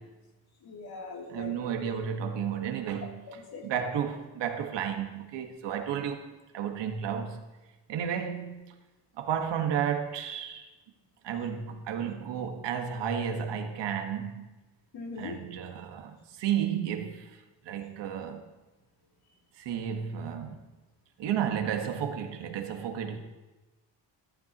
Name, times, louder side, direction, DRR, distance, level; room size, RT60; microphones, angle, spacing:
voice 1, 0.6-1.9 3.0-3.7 14.9-15.4, left 4 dB, 55° left, 3.2 m, -41 dB
voice 2, 1.3-3.2 3.6-7.4 7.9-8.6 9.2-10.7 11.2-14.5 15.2-17.4 17.7-18.5 19.6-20.6 21.2-23.2, right 8 dB, 75° right, 1.7 m, -32 dB
21.5 x 13.0 x 3.0 m
cardioid pair, 130°, 43 cm